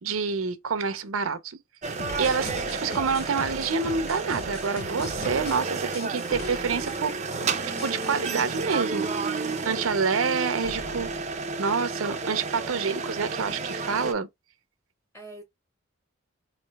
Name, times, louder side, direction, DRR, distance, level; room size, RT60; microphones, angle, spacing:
voice 1, 0.0-1.6 2.2-7.1 7.4-7.5 7.8-9.1 9.3-11.1 11.6-14.3, right 5 dB, 85° right, 0.6 m, -27 dB
sound 1, 1.8-14.1, right 4 dB, 35° right, 0.5 m, -31 dB
sound 2, 2.0-5.6 5.9-6.5 6.9-7.0 7.2-7.4 7.8-9.5, left 4 dB, 50° left, 0.5 m, -41 dB
sound 3, 2.1-3.5 6.3-7.4 10.6-11.9, equal, 70° left, 1.6 m, -43 dB
voice 2, 15.1-15.4, right 2 dB, 15° left, 1.5 m, -47 dB
3.1 x 2.6 x 3.4 m
head